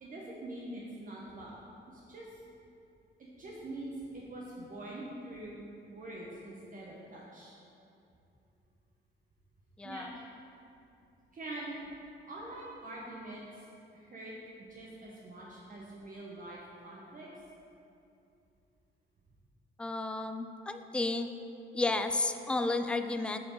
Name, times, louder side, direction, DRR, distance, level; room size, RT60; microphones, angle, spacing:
voice 1, 0.0-1.6 1.9-2.5 3.2-7.5 9.8-10.2 11.3-11.8 12.3-13.7 13.9-14.3 14.7-17.3, right 1 dB, 45° right, -4 dB, 1.1 m, -44 dB
voice 2, 9.8-10.1 19.8-21.3 21.7-23.4, left 2 dB, 5° left, 8 dB, 0.3 m, -32 dB
8.2 x 4.5 x 4.6 m, 2.7 s
cardioid pair, 90°, 20 cm